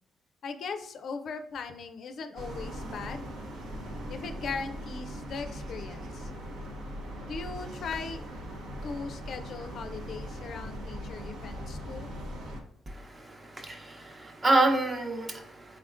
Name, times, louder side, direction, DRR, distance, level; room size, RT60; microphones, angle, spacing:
voice 1, 0.4-3.3 4.1-6.3 7.2-8.3 8.8-12.1, left 5 dB, 60° left, 8 dB, 0.4 m, -39 dB
sound 1, 2.3-12.6, equal, 90° right, 0.8 m, -40 dB
voice 2, 12.9-15.8, right 2 dB, 30° right, 3 dB, 0.7 m, -28 dB
3.8 x 3.5 x 2.5 m, 0.76 s
cardioid pair, 90°, 0 cm